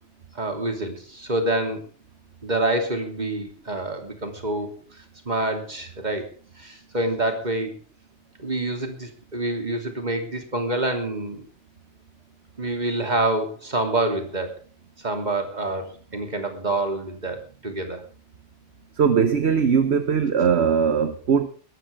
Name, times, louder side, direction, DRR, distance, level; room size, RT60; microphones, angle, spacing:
voice 1, 0.3-1.8 2.4-4.8 5.2-7.7 8.4-11.5 12.6-14.6 15.0-18.0, right 2 dB, 35° right, 3.2 m, -27 dB
voice 2, 18.9-21.5, right 6 dB, 65° right, 1.3 m, -20 dB
21.5 x 13.0 x 3.6 m
omnidirectional pair, 1.2 m